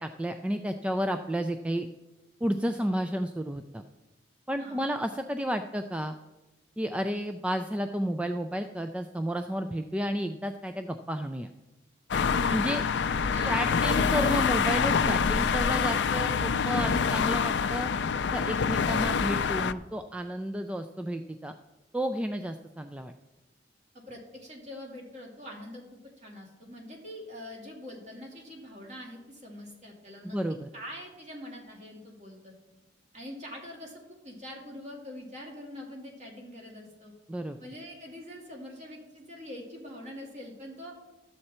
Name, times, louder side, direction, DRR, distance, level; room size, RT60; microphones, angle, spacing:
voice 1, 0.0-1.9 2.4-3.8 4.5-6.2 6.8-11.5 12.5-12.8 13.4-17.9 18.3-21.5 21.9-23.1 30.2-30.7 37.3-37.6, equal, 5° right, 7 dB, 0.3 m, -32 dB
sound 1, 12.1-19.7, left 6 dB, 65° left, 0.4 m, -26 dB
voice 2, 12.3-14.3 24.1-25.8 26.2-30.4 30.7-32.5 33.1-37.1 37.6-40.9, left 1 dB, 40° right, -1 dB, 2.6 m, -44 dB
12.5 x 7.7 x 4.3 m, 1.1 s
head